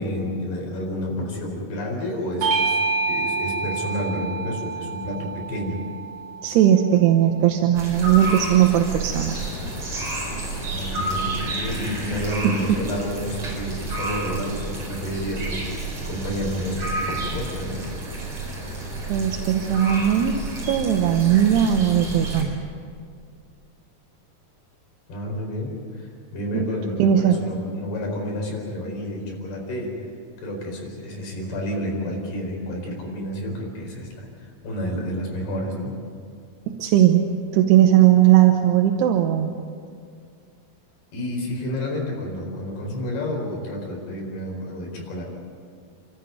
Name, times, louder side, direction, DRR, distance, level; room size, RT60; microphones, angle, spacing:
voice 1, 0.0-2.8 3.1-5.8 10.6-17.8 25.1-29.9 30.4-36.0 41.1-45.2, left 1 dB, 70° left, 0 dB, 6.6 m, -30 dB
Bell / Doorbell, 2.4-7.2, right 3 dB, 60° right, 3.6 m, -28 dB
voice 2, 6.4-9.4 12.4-12.8 19.1-22.5 26.5-26.7 27.0-27.4 36.7-37.2 37.5-39.5, right 11 dB, 80° right, 4 dB, 3.1 m, -18 dB
sound 1, 7.7-22.4, right 3 dB, 40° right, 5.7 m, -30 dB
Engine, 9.3-16.3, left 3 dB, 55° left, 2.6 m, -41 dB
29.5 x 13.5 x 9.4 m, 2.2 s
omnidirectional pair, 4.7 m